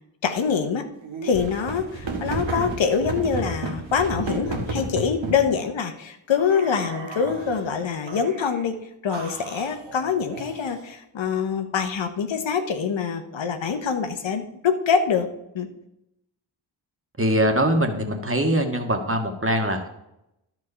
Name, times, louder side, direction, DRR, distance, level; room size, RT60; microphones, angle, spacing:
voice 1, 0.2-0.9 1.2-8.7 9.0-15.3 15.5-15.7, left 6 dB, 70° left, 7 dB, 1.1 m, -25 dB
sound 1, 1.0-5.5 6.3-7.6 8.1-8.6 9.1-10.9, right 3 dB, 65° right, 1.7 m, -33 dB
voice 2, 17.2-19.9, right 1 dB, 25° right, 4 dB, 1.7 m, -22 dB
11.0 x 4.7 x 5.6 m, 0.86 s
cardioid pair, 45°, 47 cm